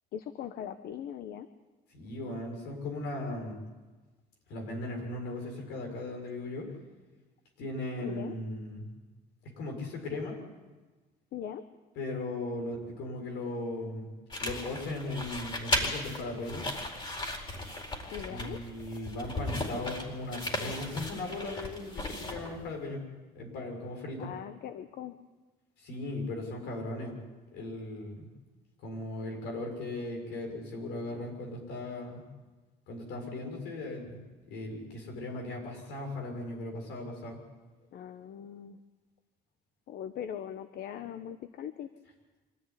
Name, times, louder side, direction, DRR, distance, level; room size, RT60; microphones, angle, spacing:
voice 1, 0.1-1.5 8.0-8.3 11.3-11.6 18.1-18.6 24.2-25.2 37.9-38.8 39.9-41.9, left 9 dB, 70° left, 10 dB, 1.1 m, -40 dB
voice 2, 1.9-3.6 4.5-6.7 7.6-8.9 9.4-10.3 11.9-14.1 14.4-16.7 18.3-23.0 23.3-24.3 25.8-27.1 27.5-28.3 28.8-32.2 32.9-34.2 34.5-37.4, left 2 dB, 85° left, 2 dB, 6.8 m, -37 dB
sound 1, 14.3-22.7, left 1 dB, 30° left, 4.6 m, -36 dB
25.5 x 14.0 x 10.0 m, 1.3 s
cardioid pair, 110°, 17 cm